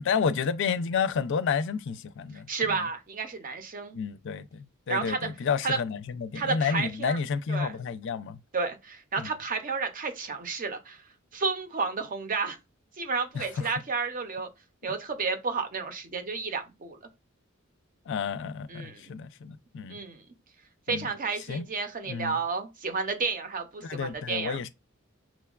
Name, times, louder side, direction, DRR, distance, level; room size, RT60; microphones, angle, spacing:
voice 1, 0.0-2.8 3.9-8.4 9.2-9.3 13.3-13.7 18.1-20.0 20.9-21.1 21.5-21.6 22.1-22.4 23.8-24.7, left 6 dB, 60° left, 0.4 m, -30 dB
voice 2, 2.5-4.0 4.9-5.3 5.6-5.8 6.3-7.2 7.5-7.8 8.5-11.0 11.3-12.6 13.0-14.5 14.8-17.0 18.7-19.1 19.9-20.2 20.9-24.7, right 4 dB, 40° right, 0.6 m, -31 dB
6.0 x 2.2 x 2.3 m
head